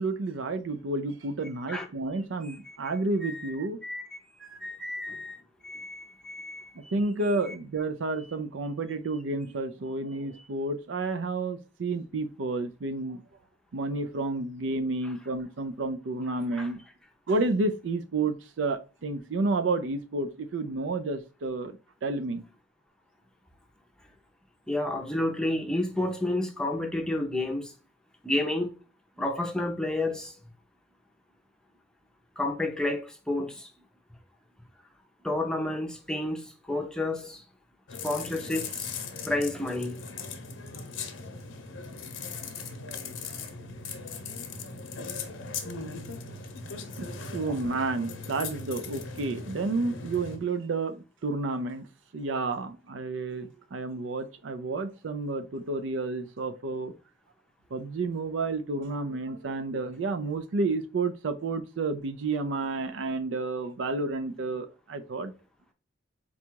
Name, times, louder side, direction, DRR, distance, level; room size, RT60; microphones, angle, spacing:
voice 1, 0.0-3.8 4.8-4.9 6.8-13.2 13.7-16.8 17.3-22.5 46.3-46.4 47.0-51.9 52.1-56.9 57.7-65.3, right 3 dB, 80° right, 0.5 m, -31 dB
voice 2, 2.4-2.8 3.2-3.5 3.8-4.0 4.3-5.4 5.6-6.9 16.5-16.7 24.7-27.7 28.2-28.7 29.2-30.4 32.4-33.7 35.2-37.4 38.0-38.9 39.3-40.2 47.5-47.6, left 1 dB, 5° left, 0.6 m, -31 dB
sound 1, 37.9-50.4, left 4 dB, 85° left, 0.7 m, -39 dB
4.0 x 2.3 x 4.5 m
head